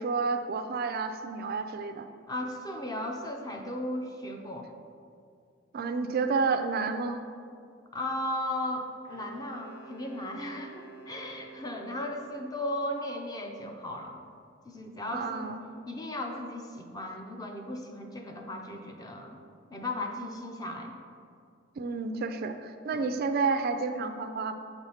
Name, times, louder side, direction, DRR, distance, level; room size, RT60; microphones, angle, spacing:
voice 1, 0.0-2.1 5.7-7.2 15.1-15.6 21.8-24.5, right 4 dB, 50° right, 8 dB, 0.4 m, -30 dB
voice 2, 2.3-4.7 7.9-14.2 14.6-15.6 15.9-19.4 19.7-20.9 22.9-23.0, left 1 dB, 20° left, 2 dB, 0.6 m, -36 dB
Wind instrument woodwind instrument, 9.1-12.2, right 4 dB, 85° left, 1.6 m, -49 dB
7.1 x 3.4 x 5.7 m, 2.2 s
head